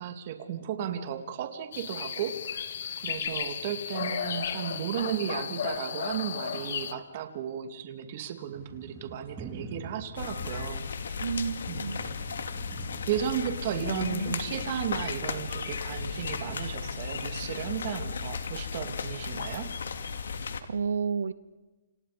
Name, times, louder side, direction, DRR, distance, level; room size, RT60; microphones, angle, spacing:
voice 1, 0.0-2.6 3.0-11.2 11.7-11.9 13.1-19.7, right 9 dB, 40° right, 8 dB, 2.7 m, -34 dB
sound 1, 1.7-6.9, left 8 dB, 55° left, 1.8 m, -34 dB
sound 2, 8.5-16.6, right 3 dB, 10° right, 2.6 m, -47 dB
sound 3, 10.2-20.6, left 5 dB, 75° left, 2.5 m, -35 dB
voice 2, 11.2-12.0 20.7-21.3, right 6 dB, 80° right, 16 dB, 0.8 m, -30 dB
29.5 x 27.0 x 5.3 m, 1.2 s
hypercardioid pair, 160°, 0 cm